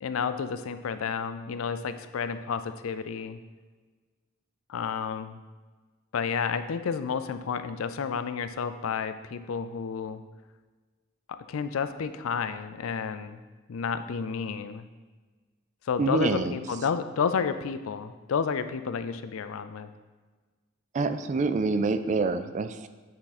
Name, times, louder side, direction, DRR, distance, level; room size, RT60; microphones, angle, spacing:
voice 1, 0.0-3.4 4.7-5.4 6.1-10.2 11.3-13.4 13.7-14.9 15.9-19.9, left 6 dB, 85° left, 11 dB, 0.4 m, -31 dB
voice 2, 16.0-16.5 20.9-22.9, right 3 dB, 35° right, 11 dB, 0.3 m, -26 dB
8.3 x 3.7 x 4.1 m, 1.3 s
head